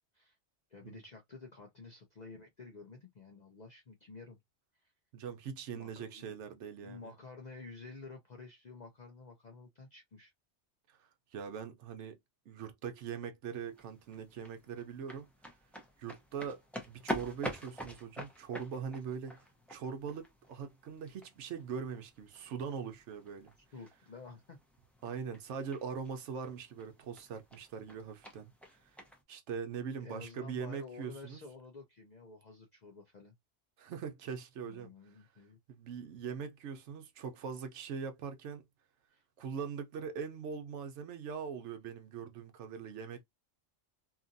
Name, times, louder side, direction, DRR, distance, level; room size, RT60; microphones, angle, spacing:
voice 1, 0.7-4.4 4.8-4.9 5.7-6.3 6.8-10.3 23.7-24.6 30.0-33.3 34.6-35.6 39.1-39.2, left 4 dB, 50° left, 0.6 m, -51 dB
voice 2, 5.1-7.1 10.9-11.0 11.3-12.2 12.5-15.3 16.0-16.6 16.9-19.4 19.7-23.5 25.0-28.5 29.3-31.4 33.8-34.9 35.7-38.6 39.4-43.2, right 6 dB, 75° right, 1.0 m, -41 dB
sound 1, 13.5-29.2, equal, ahead, 0.4 m, -47 dB
2.8 x 2.5 x 2.5 m
omnidirectional pair, 1.2 m